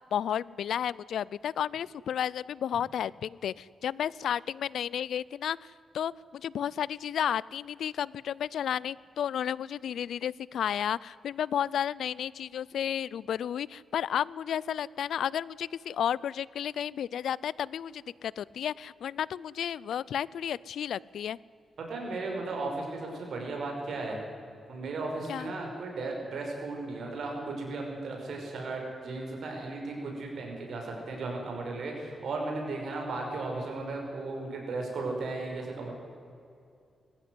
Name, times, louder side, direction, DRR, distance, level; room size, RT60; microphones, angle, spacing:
voice 1, 0.1-5.6 5.9-21.4 25.3-25.5, left 9 dB, 90° left, 22 dB, 0.4 m, -32 dB
voice 2, 21.9-24.2 24.7-35.9, right 3 dB, 65° right, 1 dB, 5.6 m, -35 dB
21.0 x 15.0 x 9.7 m, 2.4 s
wide cardioid pair, 140°, 0 cm